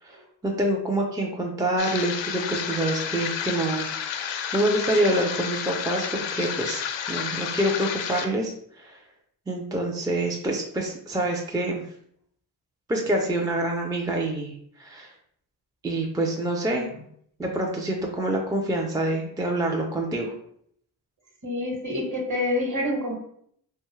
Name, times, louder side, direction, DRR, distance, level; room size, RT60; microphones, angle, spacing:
voice 1, 0.4-3.9 4.2-6.8 7.1-9.0 9.5-11.8 12.9-15.1 15.8-16.9 17.4-20.3, right 1 dB, 10° right, 0 dB, 0.4 m, -26 dB
sound 1, 1.8-8.2, left 8 dB, 65° left, 0.5 m, -31 dB
voice 2, 21.4-23.2, left 1 dB, 40° right, 1 dB, 1.2 m, -27 dB
2.6 x 2.3 x 3.0 m, 0.66 s
supercardioid pair, 55°, 48 cm